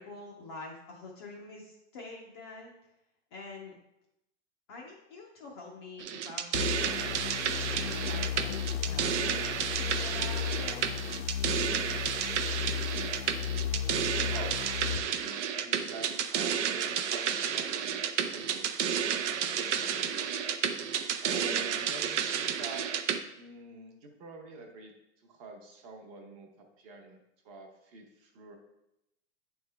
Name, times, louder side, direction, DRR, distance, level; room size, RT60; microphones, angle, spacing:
voice 1, 0.0-2.7 3.3-3.8 4.7-10.9, left 3 dB, 25° left, -2 dB, 0.4 m, -46 dB
sound 1, 6.0-23.2, right 8 dB, 80° right, 0.6 m, -31 dB
sound 2, 6.5-15.0, left 9 dB, 80° left, 0.7 m, -35 dB
voice 2, 14.8-18.7 19.4-20.2 21.2-22.9 23.4-28.6, right 2 dB, 30° right, 2 dB, 0.7 m, -47 dB
9.2 x 3.5 x 3.3 m, 0.86 s
supercardioid pair, 165°, 35 cm